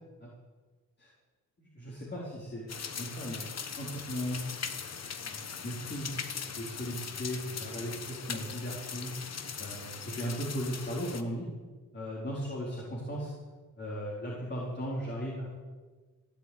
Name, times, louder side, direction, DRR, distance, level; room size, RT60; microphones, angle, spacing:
voice 1, 1.6-3.4 3.8-4.6 5.2-6.1 6.4-9.1 9.6-11.5 11.9-13.3 13.8-15.5, equal, 30° left, -5 dB, 4.3 m, -37 dB
sound 1, 2.7-11.2, left 6 dB, 50° left, 1.3 m, -40 dB
16.0 x 8.4 x 8.8 m, 1.4 s
cardioid pair, 70°, 33 cm